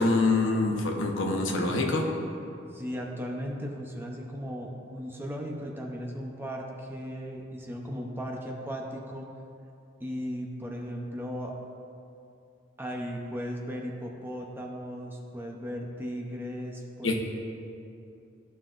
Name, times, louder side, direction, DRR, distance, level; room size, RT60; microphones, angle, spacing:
voice 1, 0.0-2.1 17.0-17.1, left 2 dB, 80° left, 1 dB, 1.0 m, -25 dB
voice 2, 2.7-9.3 10.0-11.5 12.8-17.1, equal, 10° right, 0 dB, 0.7 m, -36 dB
14.0 x 5.6 x 2.5 m, 2.6 s
head